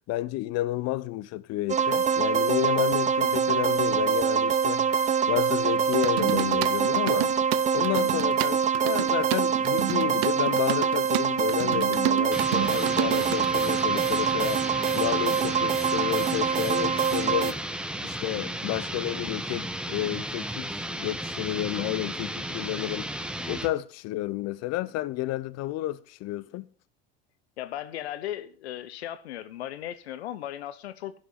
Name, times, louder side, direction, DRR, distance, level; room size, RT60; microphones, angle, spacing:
voice 1, 0.1-7.3 7.7-14.6 14.9-17.6 18.0-23.1 23.5-26.7, left 16 dB, 55° left, 0.8 m, -31 dB
sound 1, 1.7-17.5, right 7 dB, 25° right, 0.7 m, -25 dB
sound 2, 5.9-13.5, right 22 dB, 70° right, 0.6 m, -31 dB
sound 3, 12.3-23.8, right 1 dB, 5° right, 1.4 m, -34 dB
voice 2, 27.6-31.1, left 12 dB, 85° left, 0.9 m, -36 dB
11.0 x 6.5 x 7.3 m
hypercardioid pair, 85°, 31 cm